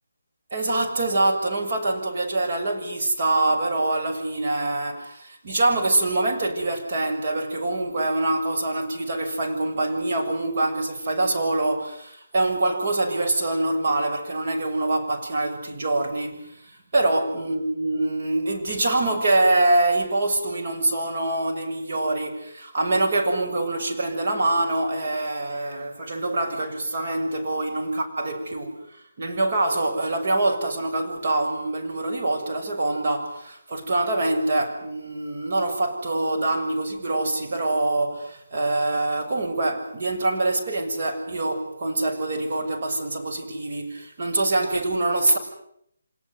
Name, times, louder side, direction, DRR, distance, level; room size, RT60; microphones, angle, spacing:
voice 1, 0.5-28.8 29.2-45.4, right 2 dB, 45° right, 6.9 m, -25 dB
26.5 x 19.5 x 9.6 m
figure-of-eight pair, 150°, 0 cm